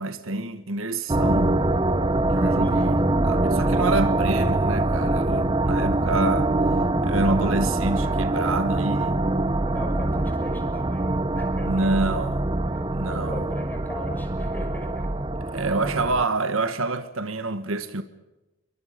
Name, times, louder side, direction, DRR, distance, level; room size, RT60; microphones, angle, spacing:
voice 1, 0.0-1.5 2.3-6.5 7.0-9.2 11.6-12.5 12.9-13.4 15.5-18.0, right 3 dB, 75° right, 1.6 m, -27 dB
sound 1, 1.1-16.3, right 2 dB, 25° right, 0.9 m, -24 dB
voice 2, 2.6-2.9 7.9-8.2 9.7-11.9 12.7-15.1 15.6-15.7, left 1 dB, 10° left, 6.0 m, -40 dB
28.5 x 23.0 x 5.2 m
head